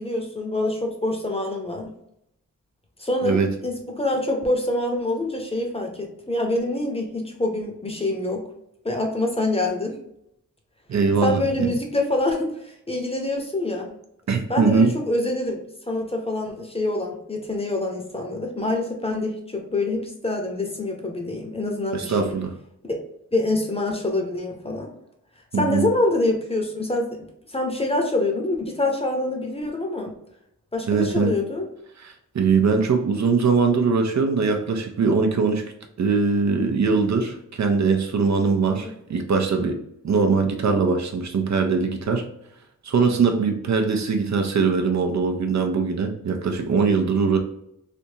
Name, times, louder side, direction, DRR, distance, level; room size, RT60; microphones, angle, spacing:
voice 1, 0.0-1.9 3.0-8.4 8.8-10.0 11.2-13.9 14.5-22.4 22.8-23.0 23.3-24.9 25.5-30.1 30.7-31.7 38.8-38.9, left 2 dB, 20° left, 2 dB, 0.8 m, -26 dB
voice 2, 10.9-11.7 14.3-14.9 21.9-22.5 25.5-25.9 30.9-31.3 32.0-35.6 36.0-39.8 40.0-42.2 42.8-47.4, right 4 dB, 60° right, 4 dB, 0.6 m, -21 dB
3.4 x 2.7 x 2.7 m, 0.76 s
wide cardioid pair, 100°, 31 cm